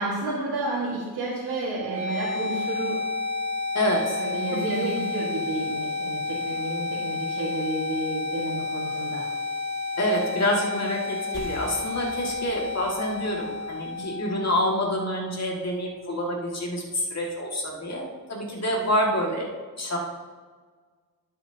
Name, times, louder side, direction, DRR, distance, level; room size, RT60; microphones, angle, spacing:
voice 1, 0.0-3.0 4.2-9.3, right 2 dB, 90° right, -7 dB, 2.0 m, -31 dB
sound 1, 1.7-15.7, left 3 dB, 20° left, 2.2 m, -31 dB
voice 2, 3.7-4.2 10.0-19.5 19.8-20.0, equal, 45° left, -1 dB, 2.2 m, -27 dB
sound 2, 11.3-16.5, equal, ahead, 2.1 m, -47 dB
12.5 x 7.7 x 2.9 m, 1.5 s
cardioid pair, 70°, 38 cm